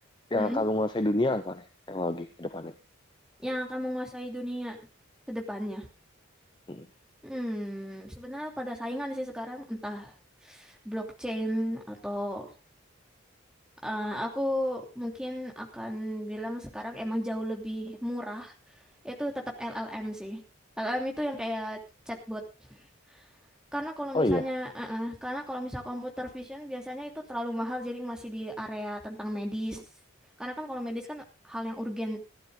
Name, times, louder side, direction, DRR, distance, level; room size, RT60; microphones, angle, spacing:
voice 1, 0.3-2.7 6.7-6.9 24.1-24.5, left 1 dB, 20° left, 8 dB, 0.7 m, -28 dB
voice 2, 3.4-4.8 5.3-5.9 7.2-10.1 10.4-12.5 13.8-18.5 19.0-19.3 19.6-20.4 20.8-21.8 22.1-22.4 22.7-22.8 23.1-23.2 23.7-29.8 30.4-32.2, equal, 5° right, 1 dB, 2.9 m, -34 dB
15.5 x 12.0 x 3.8 m, 0.30 s
head